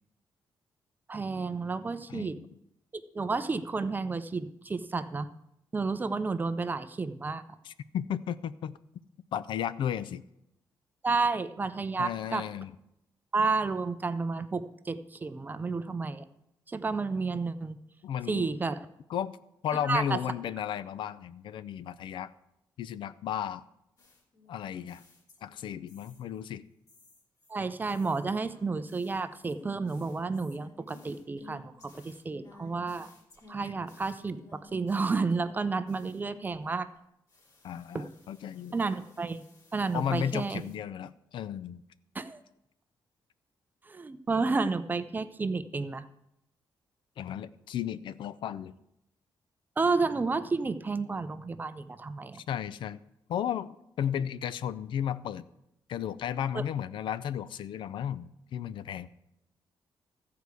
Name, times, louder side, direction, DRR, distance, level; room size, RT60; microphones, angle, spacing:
voice 1, 1.1-2.4 3.1-5.3 5.7-7.4 11.0-12.5 13.3-16.2 16.7-17.8 18.3-18.9 19.8-20.2 27.5-33.1 33.5-36.9 37.9-38.1 38.7-39.5 39.7-40.6 42.1-42.4 43.9-46.1 49.8-52.4 56.5-56.6, right 4 dB, 20° right, 12 dB, 0.5 m, -31 dB
voice 2, 2.1-2.4 7.6-8.8 9.3-10.2 12.0-12.7 18.0-18.5 19.1-19.3 19.6-22.3 22.8-23.6 24.5-25.0 25.4-26.6 37.6-38.7 39.9-41.8 47.2-48.7 52.3-53.0 53.3-55.4 55.9-59.1, left 9 dB, 75° left, 16 dB, 0.5 m, -34 dB
sound 1, 24.0-25.6 25.9-26.4 26.9-37.0 37.3-40.8, left 3 dB, 45° left, 2.9 m, -58 dB
14.0 x 4.7 x 8.1 m, 0.82 s
wide cardioid pair, 145°, 8 cm